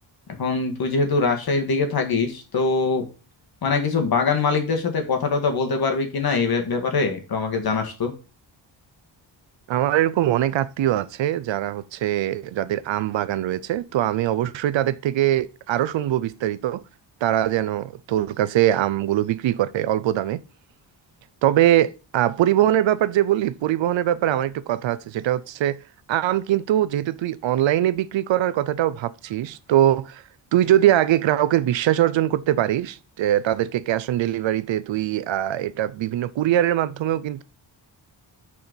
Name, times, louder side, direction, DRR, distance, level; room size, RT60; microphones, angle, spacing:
voice 1, 0.4-3.1 3.6-8.1, left 4 dB, 55° left, 1.7 m, -23 dB
voice 2, 9.7-16.8 17.2-20.4 21.4-25.8 26.1-30.2 30.5-37.4, right 12 dB, 80° right, 0.6 m, -22 dB
6.4 x 4.4 x 5.2 m
wide cardioid pair, 175°, 45 cm